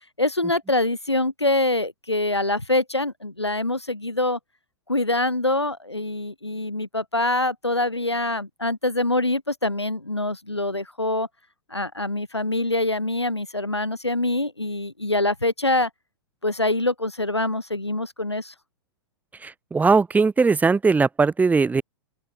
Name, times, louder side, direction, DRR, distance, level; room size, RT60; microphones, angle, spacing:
voice 1, 0.2-4.4 4.9-11.3 11.7-15.9 16.4-18.5, left 2 dB, 90° left, 2.5 m, -24 dB
voice 2, 19.4-21.8, right 4 dB, 10° right, 5.7 m, -19 dB
open air
figure-of-eight pair, 100°, 14 cm